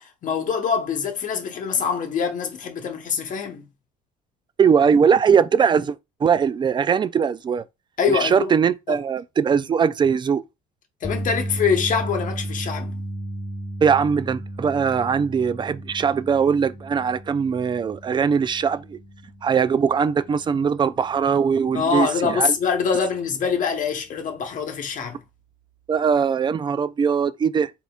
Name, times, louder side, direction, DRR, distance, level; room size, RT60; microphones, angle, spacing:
voice 1, 0.0-3.7 8.0-8.5 8.9-9.0 11.0-12.9 21.7-25.2, left 6 dB, 50° left, 1.1 m, -24 dB
voice 2, 4.6-6.0 6.2-7.6 8.1-10.4 13.8-19.0 19.4-22.5 25.9-27.7, right 6 dB, 25° right, 0.3 m, -20 dB
sound 1, 11.0-23.3 23.6-23.9 26.1-26.2, right 1 dB, 15° left, 0.8 m, -35 dB
4.1 x 3.8 x 2.4 m
supercardioid pair, 95°, 18 cm